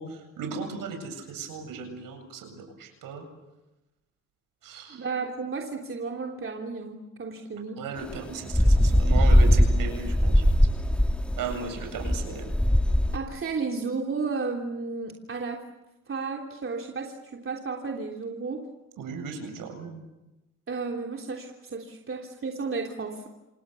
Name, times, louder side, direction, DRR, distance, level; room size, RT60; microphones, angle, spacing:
voice 1, 0.0-3.2 4.6-5.0 7.8-10.5 11.4-12.5 19.0-20.0, right 5 dB, 70° right, 6 dB, 7.9 m, -36 dB
voice 2, 4.9-7.8 13.1-15.6 16.1-18.6 20.7-23.3, right 4 dB, 35° right, 1 dB, 3.3 m, -33 dB
sound 1, 8.0-13.2, equal, 5° left, 1.7 m, -21 dB
27.5 x 27.5 x 7.1 m, 1.0 s
supercardioid pair, 65°, 35 cm